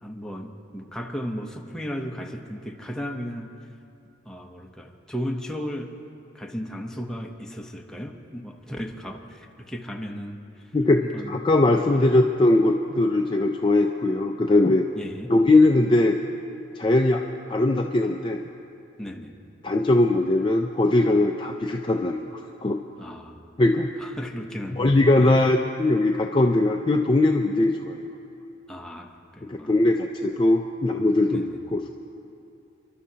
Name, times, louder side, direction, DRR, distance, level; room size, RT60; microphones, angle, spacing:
voice 1, 0.0-3.5 4.2-5.9 6.3-10.7 11.0-11.3 11.9-12.1 14.9-15.3 19.0-19.3 23.0-23.5 24.0-25.6 28.7-29.8 31.3-31.6, equal, 5° left, 1 dB, 0.8 m, -35 dB
voice 2, 10.7-14.9 15.3-16.2 16.8-17.2 17.5-18.4 19.6-22.8 23.6-23.9 24.7-28.1 29.4-31.9, left 2 dB, 25° left, 3 dB, 0.4 m, -20 dB
29.5 x 12.0 x 2.8 m, 2.6 s
head